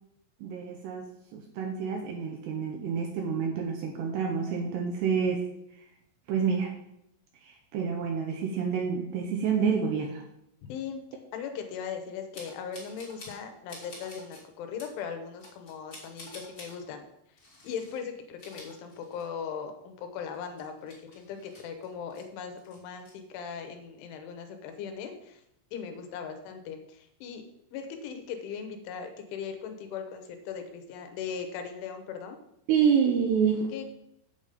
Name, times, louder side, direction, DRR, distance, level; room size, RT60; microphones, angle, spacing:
voice 1, 0.4-5.4 6.3-6.7 7.4-10.2 32.7-33.7, right 6 dB, 75° right, 2 dB, 2.6 m, -28 dB
voice 2, 10.7-11.0 11.3-17.0 17.6-25.4 25.7-32.4 33.7-33.8, left 7 dB, 75° left, 6 dB, 3.4 m, -39 dB
sound 1, 12.3-13.4 13.7-14.4 14.8-14.9 15.4-16.8 17.4-18.0 18.3-19.5 19.8-19.9 20.3-22.2 22.6-23.1, left 1 dB, 50° left, 0.9 m, -49 dB
8.5 x 7.1 x 5.2 m, 0.78 s
omnidirectional pair, 5.7 m